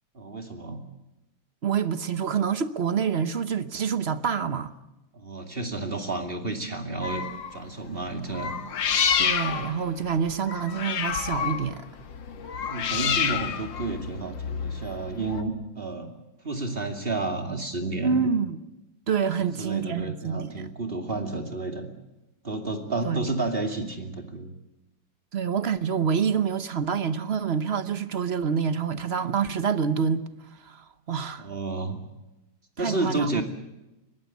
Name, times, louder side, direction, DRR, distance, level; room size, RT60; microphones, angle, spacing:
voice 1, 0.1-0.8 5.1-8.5 12.7-16.1 16.4-18.3 19.4-21.9 22.4-24.5 31.4-32.0 32.8-33.4, right 3 dB, 30° right, 2.5 m, -31 dB
voice 2, 1.6-4.7 9.2-11.9 18.0-18.6 19.1-20.7 23.0-23.3 25.3-30.2 30.6-31.5 32.8-33.4, right 6 dB, 45° right, 0.9 m, -27 dB
sound 1, 7.0-7.6 8.3-15.4, left 7 dB, 75° left, 2.1 m, -28 dB
22.0 x 18.5 x 8.3 m
omnidirectional pair, 2.1 m